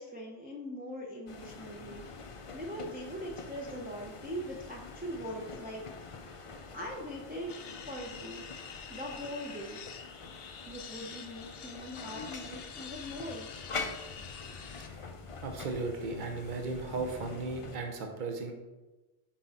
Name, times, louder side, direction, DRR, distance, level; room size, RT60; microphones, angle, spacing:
voice 1, 0.0-6.2 6.7-7.5 7.8-8.4 8.9-9.8 10.7-13.5, equal, 10° right, -2 dB, 0.6 m, -41 dB
sound 1, 1.3-17.8, left 4 dB, 40° left, 0.5 m, -45 dB
sound 2, 7.5-14.9, left 7 dB, 70° left, 0.8 m, -47 dB
voice 2, 14.7-15.0 15.4-18.5, right 3 dB, 50° right, 3 dB, 0.9 m, -36 dB
6.0 x 4.8 x 4.2 m, 1.1 s
omnidirectional pair, 1.1 m